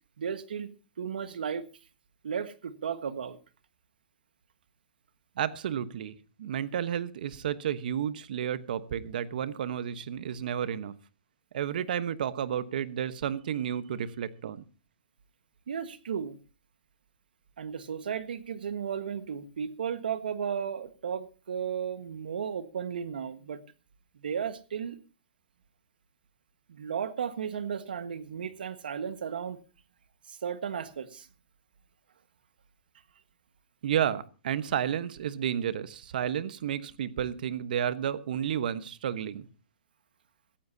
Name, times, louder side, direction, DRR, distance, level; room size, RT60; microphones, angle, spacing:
voice 1, 0.2-0.7 1.0-1.6 2.2-3.4 15.7-16.4 17.6-23.6 24.2-25.0 26.7-29.6 30.3-31.3, right 7 dB, 80° right, 1.4 m, -34 dB
voice 2, 5.4-10.9 11.5-14.6 33.8-39.5, right 9 dB, 65° right, 1.1 m, -31 dB
17.5 x 14.5 x 2.8 m
hypercardioid pair, 145°, 5 cm